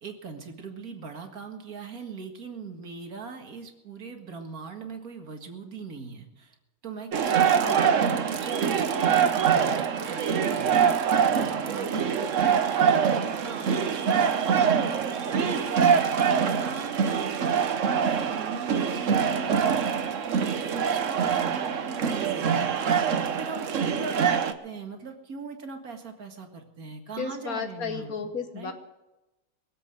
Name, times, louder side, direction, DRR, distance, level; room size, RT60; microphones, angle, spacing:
voice 1, 0.0-6.6 6.8-17.4 17.8-28.7, right 4 dB, 80° right, 4 dB, 2.3 m, -40 dB
sound 1, 7.1-24.5, right 7 dB, 65° right, 1.3 m, -24 dB
voice 2, 7.6-8.0 27.2-28.7, left 5 dB, 85° left, 7 dB, 1.7 m, -33 dB
22.5 x 7.9 x 7.7 m, 1.0 s
omnidirectional pair, 1.5 m